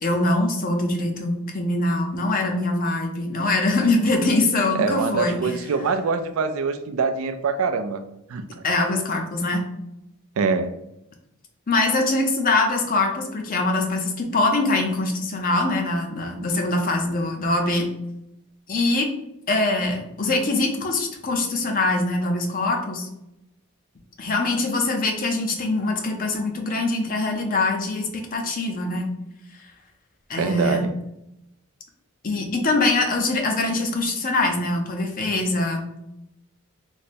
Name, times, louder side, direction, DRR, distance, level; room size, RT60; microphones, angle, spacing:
voice 1, 0.0-5.5 8.6-9.6 11.7-17.9 18.7-19.1 19.5-23.1 24.2-29.1 30.3-30.9 32.2-35.9, left 2 dB, 40° left, 3 dB, 0.6 m, -23 dB
voice 2, 4.7-8.0 8.3-8.4 10.4-10.7 30.4-30.9, right 4 dB, 70° right, 9 dB, 0.3 m, -24 dB
3.2 x 2.0 x 4.1 m, 0.85 s
head